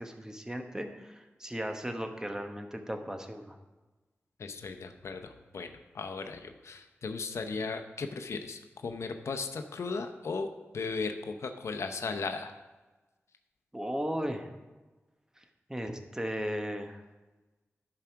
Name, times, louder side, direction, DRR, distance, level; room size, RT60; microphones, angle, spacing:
voice 1, 0.0-3.6 13.7-14.5 15.4-15.5 15.7-17.0, equal, 15° right, 5 dB, 1.0 m, -36 dB
voice 2, 4.4-10.5 10.7-12.6, left 4 dB, 85° left, 7 dB, 0.7 m, -36 dB
11.0 x 4.9 x 5.8 m, 1.2 s
wide cardioid pair, 70°, 5 cm